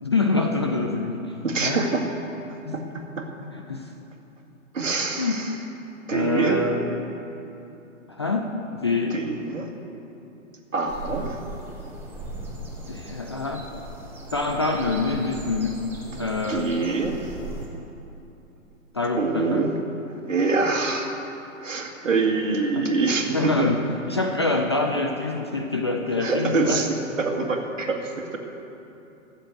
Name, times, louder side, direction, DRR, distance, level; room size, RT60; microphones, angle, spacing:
voice 1, 0.0-1.4 1.6-1.9 2.6-2.7 3.5-3.9 5.2-5.4 6.1-6.9 8.1-9.2 12.9-13.7 14.3-15.8 16.2-16.8 18.9-19.7 22.8-22.9 23.3-26.8, left 3 dB, 20° left, 3 dB, 0.4 m, -26 dB
voice 2, 1.4-2.1 2.7-2.8 3.2-3.3 4.7-5.6 6.1-6.6 9.1-9.7 10.7-11.4 16.5-17.2 19.2-19.7 20.3-21.2 21.6-23.7 26.2-28.4, right 3 dB, 70° right, 3 dB, 2.0 m, -25 dB
sound 1, 10.8-17.7, right 1 dB, 5° right, 2.6 m, -38 dB
14.0 x 7.8 x 8.0 m, 2.9 s
figure-of-eight pair, 120°, 40 cm